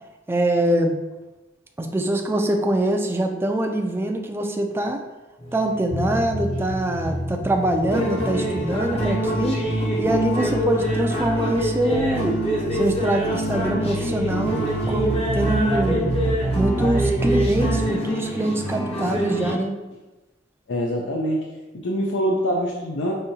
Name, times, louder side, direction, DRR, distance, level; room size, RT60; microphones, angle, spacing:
voice 1, 0.3-1.0 1.8-5.0 5.5-9.6 10.0-12.4 12.7-16.1 16.6-19.8, right 1 dB, 15° right, 3 dB, 0.3 m, -24 dB
sound 1, 5.4-19.5, equal, 35° left, 0.7 m, -27 dB
sound 2, 5.9-17.9, right 1 dB, 85° right, 0.9 m, -28 dB
voice 2, 20.7-21.5 21.7-23.1, equal, 90° left, -2 dB, 0.5 m, -24 dB
5.0 x 2.7 x 2.7 m, 1.1 s
head